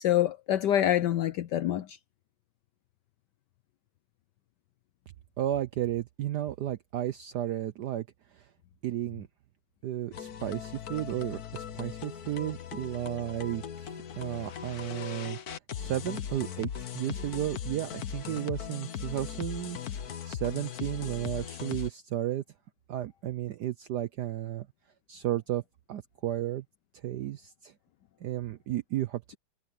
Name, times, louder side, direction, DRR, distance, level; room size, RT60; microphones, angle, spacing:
voice 1, 0.0-2.0, left 12 dB, 75° left, 1.0 m, -26 dB
voice 2, 5.4-8.1 8.3-8.5 8.8-9.3 9.8-15.4 15.7-22.4 22.9-24.7 25.1-25.6 25.9-26.6 27.0-27.7 28.2-29.4, right 13 dB, 75° right, 0.9 m, -33 dB
sound 1, 10.1-21.9, left 8 dB, 50° left, 1.3 m, -39 dB
omnidirectional pair, 2.4 m